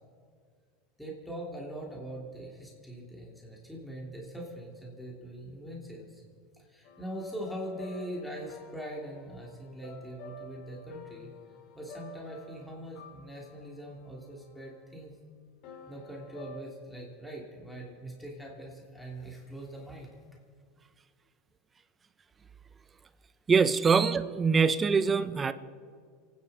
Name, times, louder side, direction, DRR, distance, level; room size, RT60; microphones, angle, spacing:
voice 1, 1.0-6.2 6.7-11.3 11.7-15.2 15.9-20.2, right 1 dB, 5° left, -3 dB, 3.0 m, -42 dB
sound 1, 6.8-14.8 15.6-16.6, left 2 dB, 60° left, 2.8 m, -50 dB
voice 2, 23.5-25.5, right 5 dB, 20° right, 13 dB, 0.7 m, -24 dB
28.5 x 10.0 x 4.3 m, 2.1 s
supercardioid pair, 110°, 0 cm